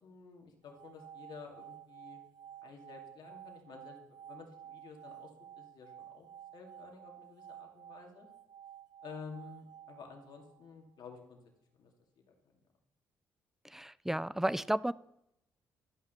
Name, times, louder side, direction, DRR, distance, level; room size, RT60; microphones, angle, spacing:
voice 1, 0.0-2.2 2.6-4.0 4.3-8.3 9.0-11.4 11.7-11.9 12.3-12.5, left 5 dB, 65° left, 2 dB, 2.5 m, -51 dB
sound 1, 0.6-10.8, right 10 dB, 60° right, 1.3 m, -53 dB
voice 2, 13.6-14.9, right 1 dB, 5° right, 19 dB, 0.4 m, -33 dB
12.5 x 5.7 x 6.8 m, 0.83 s
hypercardioid pair, 50°, 8 cm